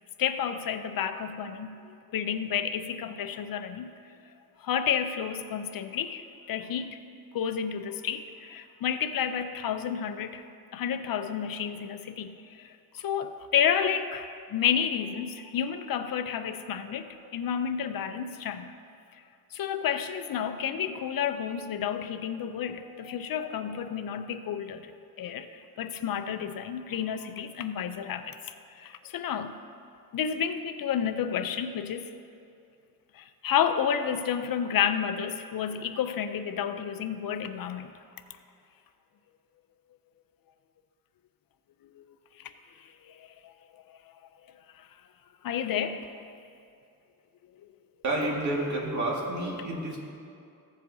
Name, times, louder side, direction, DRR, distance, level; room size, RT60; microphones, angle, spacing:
voice 1, 0.2-3.9 4.6-7.0 7.3-10.4 10.7-18.7 19.5-24.9 25.2-25.5 25.8-28.4 28.7-29.5 30.1-32.1 33.1-37.9 42.4-42.5 43.1-43.5 44.7-44.9 45.4-46.1, left 8 dB, 65° left, 9 dB, 0.5 m, -31 dB
voice 2, 48.0-50.0, right 1 dB, 50° right, -2 dB, 1.9 m, -29 dB
15.5 x 7.3 x 2.7 m, 2.5 s
wide cardioid pair, 125°, 37 cm